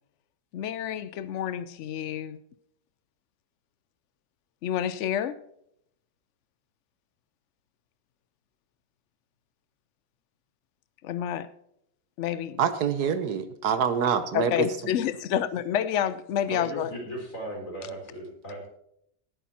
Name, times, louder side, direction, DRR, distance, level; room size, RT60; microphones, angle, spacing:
voice 1, 0.5-2.4 4.6-5.4 11.0-11.5 12.2-12.6 14.3-16.9, left 10 dB, 80° left, 15 dB, 0.6 m, -29 dB
voice 2, 12.6-14.7, right 7 dB, 70° right, 11 dB, 1.4 m, -26 dB
voice 3, 16.5-18.7, right 1 dB, 50° left, 0 dB, 4.4 m, -37 dB
17.5 x 8.4 x 4.3 m, 0.74 s
omnidirectional pair, 1.8 m